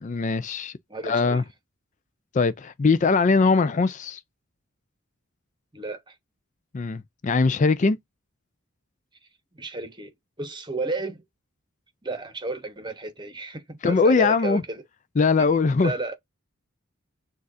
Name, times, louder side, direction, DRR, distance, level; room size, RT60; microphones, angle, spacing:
voice 1, 0.0-0.7 1.0-1.4 2.3-4.2 6.7-8.0 13.8-14.6 15.2-15.9, left 4 dB, 35° left, 0.4 m, -21 dB
voice 2, 0.9-1.4 5.7-6.1 9.5-10.1 10.4-11.2 12.0-14.8 15.4-15.5 15.8-16.2, right 3 dB, 20° right, 1.0 m, -32 dB
6.3 x 2.5 x 2.6 m
head